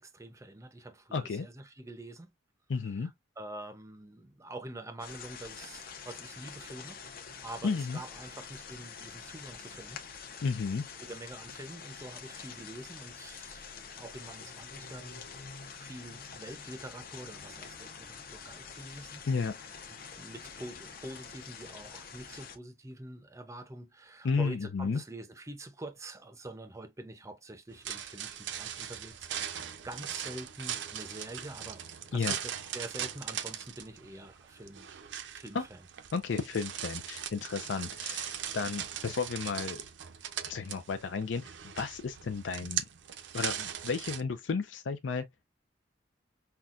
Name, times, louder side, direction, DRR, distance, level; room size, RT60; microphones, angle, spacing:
voice 1, 0.0-2.3 2.7-3.1 3.4-10.0 11.0-15.2 15.8-19.3 20.1-31.8 32.1-34.9 35.3-35.8, right 1 dB, 15° right, 0.6 m, -46 dB
voice 2, 1.1-1.5 2.7-3.1 7.6-8.0 10.4-10.8 19.3-19.5 24.2-25.0 32.1-32.3 35.5-35.6 36.1-39.8 40.5-42.8 43.3-45.3, left 5 dB, 80° left, 0.5 m, -33 dB
sound 1, 5.0-22.6, left 6 dB, 50° left, 0.8 m, -46 dB
sound 2, 27.7-44.2, right 9 dB, 70° right, 0.5 m, -40 dB
5.7 x 2.2 x 2.4 m
head